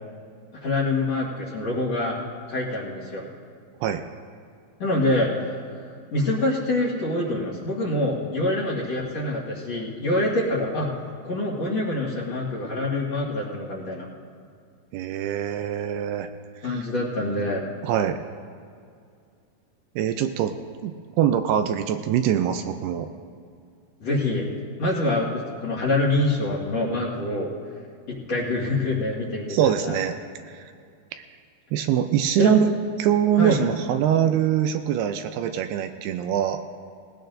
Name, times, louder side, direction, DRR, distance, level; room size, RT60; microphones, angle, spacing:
voice 1, 0.6-2.2 2.5-3.3 4.8-5.5 6.1-10.9 11.2-14.1 16.6-17.6 24.0-24.5 24.8-27.5 28.1-30.0 32.4-32.7 33.4-33.6, left 2 dB, 50° left, -4 dB, 2.2 m, -25 dB
voice 2, 14.9-16.3 16.6-16.8 17.8-18.2 20.0-20.5 20.8-23.1 29.5-30.2 30.5-30.7 31.7-32.7 33.0-36.6, right 9 dB, 80° right, 7 dB, 2.4 m, -23 dB
20.0 x 16.0 x 2.6 m, 2.3 s
omnidirectional pair, 4.8 m